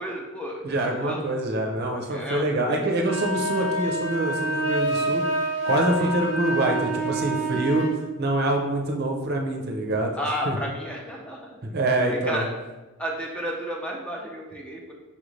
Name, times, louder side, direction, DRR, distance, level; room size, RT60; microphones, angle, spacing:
voice 1, 0.0-1.2 2.1-2.8 6.0-6.1 10.2-12.5 13.0-14.9, equal, 5° left, -1 dB, 0.4 m, -33 dB
voice 2, 0.6-5.2 5.6-7.9 8.2-10.1 10.5-10.6 11.6-12.4, right 1 dB, 50° right, 2 dB, 0.6 m, -25 dB
sound 1, 3.0-8.0, right 1 dB, 35° left, 1.2 m, -27 dB
5.4 x 2.6 x 3.2 m, 1.1 s
head